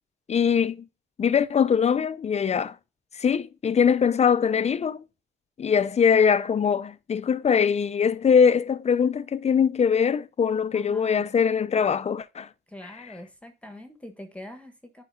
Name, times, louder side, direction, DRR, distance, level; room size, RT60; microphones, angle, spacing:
voice 1, 0.3-0.8 1.2-2.8 3.1-5.0 5.6-12.5, left 7 dB, 35° left, 0.5 m, -22 dB
voice 2, 10.7-11.2 12.7-15.0, left 1 dB, 5° left, 1.3 m, -43 dB
9.8 x 5.2 x 2.7 m
cardioid pair, 90°, 20 cm